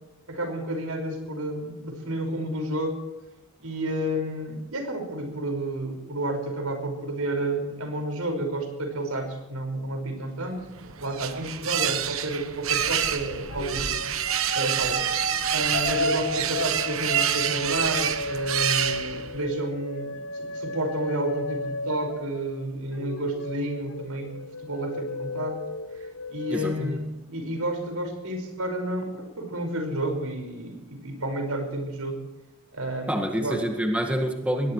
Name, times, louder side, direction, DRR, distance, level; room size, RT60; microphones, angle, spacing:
voice 1, 0.3-3.0 3.6-14.0 14.5-15.1 15.5-25.6 25.9-32.2 32.7-33.6, right 1 dB, 85° right, 5 dB, 5.5 m, -31 dB
sound 1, 10.6-19.5, right 9 dB, 70° right, 1.2 m, -27 dB
sound 2, 13.5-22.6 22.9-26.6, left 2 dB, 65° left, 1.2 m, -34 dB
voice 2, 26.5-27.0 33.1-34.7, equal, 5° right, 2 dB, 1.8 m, -27 dB
22.5 x 19.0 x 3.2 m, 1.0 s
head